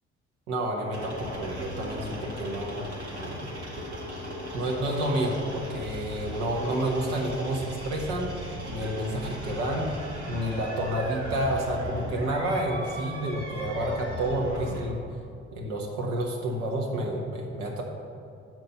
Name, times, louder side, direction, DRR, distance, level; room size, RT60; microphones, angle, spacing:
voice 1, 0.5-2.8 3.1-3.6 4.5-8.3 8.7-9.9 10.3-15.0 15.5-17.8, right 1 dB, 60° right, 0 dB, 1.1 m, -29 dB
sound 1, 0.9-14.9, left 1 dB, 85° right, 0.9 m, -37 dB
7.2 x 4.5 x 6.8 m, 2.6 s
figure-of-eight pair, 50°, 33 cm